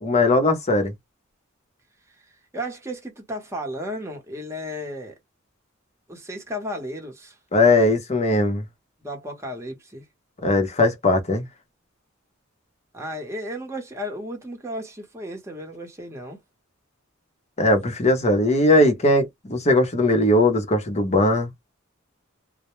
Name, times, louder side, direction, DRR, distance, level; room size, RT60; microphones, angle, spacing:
voice 1, 0.0-0.9 7.5-8.6 10.4-11.4 17.6-21.5, left 1 dB, 35° left, 0.7 m, -19 dB
voice 2, 2.5-5.2 6.1-7.4 9.0-10.0 12.9-16.4, equal, 15° right, 0.8 m, -34 dB
2.1 x 2.1 x 2.9 m
head